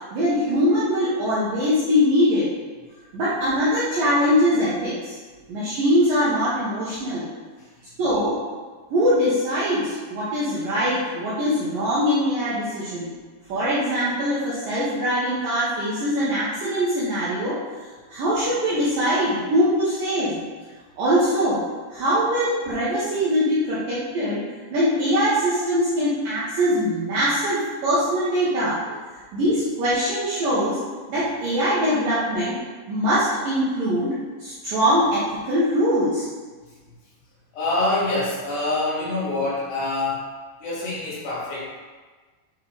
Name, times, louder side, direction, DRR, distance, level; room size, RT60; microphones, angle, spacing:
voice 1, 0.1-2.5 3.1-5.2 5.5-7.3 8.0-8.4 8.9-13.1 13.5-17.6 18.1-20.4 21.0-21.6 21.9-24.4 24.7-28.8 29.3-30.8 31.1-32.6 32.9-34.1 34.4-36.3, equal, 65° right, -10 dB, 2.3 m, -22 dB
voice 2, 37.5-40.2 40.6-41.6, left 2 dB, 60° left, -8 dB, 4.3 m, -25 dB
8.2 x 4.6 x 4.8 m, 1.4 s
omnidirectional pair, 5.6 m